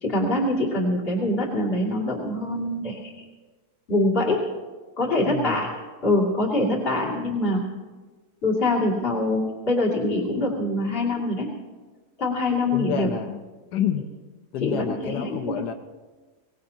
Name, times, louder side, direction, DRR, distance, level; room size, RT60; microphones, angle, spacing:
voice 1, 0.0-3.1 3.9-4.4 5.0-5.7 6.0-7.6 8.4-11.5 12.2-13.1 14.6-15.6, left 1 dB, 35° left, -3 dB, 2.8 m, -24 dB
voice 2, 5.3-5.7 12.7-13.4 13.7-14.1 14.5-15.7, left 9 dB, 90° left, 7 dB, 1.4 m, -29 dB
24.0 x 18.0 x 2.9 m, 1.3 s
omnidirectional pair, 1.7 m